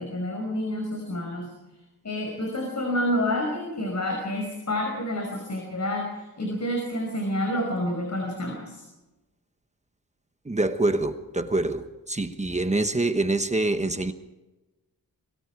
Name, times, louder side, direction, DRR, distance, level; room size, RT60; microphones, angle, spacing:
voice 1, 0.0-1.6 2.0-8.8, left 1 dB, 45° left, 1 dB, 5.4 m, -29 dB
voice 2, 10.5-14.1, right 2 dB, 20° right, 8 dB, 1.2 m, -25 dB
26.0 x 22.0 x 4.8 m, 1.1 s
wide cardioid pair, 105°, 37 cm